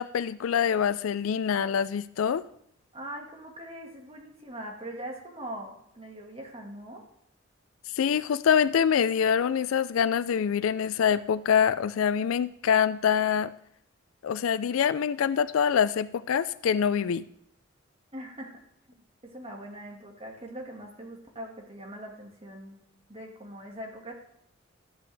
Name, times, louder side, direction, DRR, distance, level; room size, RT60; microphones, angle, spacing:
voice 1, 0.0-2.4 8.0-13.5 14.2-17.3, left 7 dB, 85° left, 15 dB, 0.4 m, -25 dB
voice 2, 2.9-7.0 18.1-18.6 18.9-22.8 23.1-24.1, right 1 dB, 30° right, 1 dB, 1.8 m, -42 dB
13.0 x 8.5 x 3.4 m, 0.71 s
head